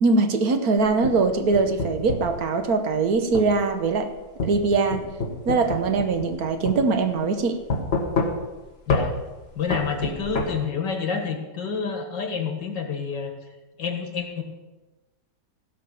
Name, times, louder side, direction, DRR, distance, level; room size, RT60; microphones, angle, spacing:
voice 1, 0.0-4.1 4.4-5.0 5.4-7.6, right 4 dB, 60° right, 7 dB, 1.4 m, -22 dB
sound 1, 0.8-2.4 3.3-3.5 4.4-6.4 6.7-6.8 7.7-8.6 8.9-9.1 9.7-10.5, left 3 dB, 40° left, 1.5 m, -27 dB
voice 2, 9.6-13.3 13.8-14.4, left 6 dB, 85° left, 5 dB, 2.2 m, -28 dB
16.0 x 5.8 x 6.9 m, 1.2 s
omnidirectional pair, 1.9 m